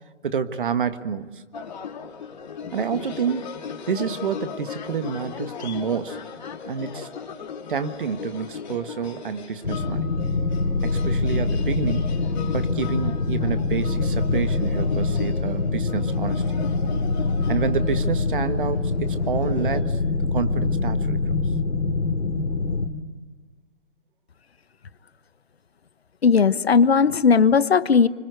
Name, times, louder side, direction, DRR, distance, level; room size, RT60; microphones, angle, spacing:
voice 1, 0.2-1.4 2.7-3.6 3.9-6.2 6.7-7.1 7.7-10.1 10.8-12.2 12.5-16.4 17.5-20.0 20.3-21.3, right 6 dB, 45° right, 10 dB, 1.6 m, -28 dB
sound 1, 1.5-19.8, left 6 dB, 40° left, 3.0 m, -37 dB
sound 2, 9.6-22.9, left 3 dB, 85° left, 3.0 m, -24 dB
voice 2, 26.2-28.1, left 5 dB, 60° left, 14 dB, 1.2 m, -17 dB
26.5 x 25.0 x 8.1 m, 1.4 s
figure-of-eight pair, 155°, 35 cm